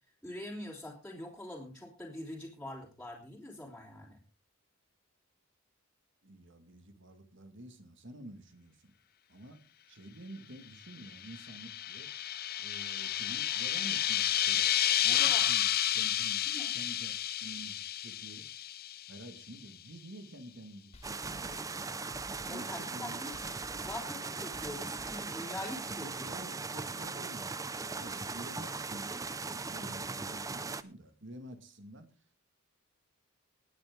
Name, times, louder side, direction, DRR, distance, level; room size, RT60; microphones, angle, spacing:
voice 1, 0.2-4.2 15.1-15.5 16.5-16.7 22.5-23.3 23.8-26.2, left 1 dB, 5° left, -5 dB, 3.5 m, -44 dB
voice 2, 6.2-8.9 9.3-9.6 9.9-12.1 12.6-14.7 15.0-16.4 16.7-18.6 19.1-21.8 22.5-23.2 23.6-23.9 26.0-27.5 28.0-32.1, right 1 dB, 60° right, 9 dB, 2.0 m, -49 dB
sound 1, 11.0-19.4, left 11 dB, 45° left, 0.7 m, -31 dB
sound 2, 20.9-25.9, left 1 dB, 30° left, 1.9 m, -54 dB
sound 3, 21.0-30.8, right 4 dB, 15° right, 0.5 m, -39 dB
19.5 x 9.4 x 3.8 m, 0.33 s
head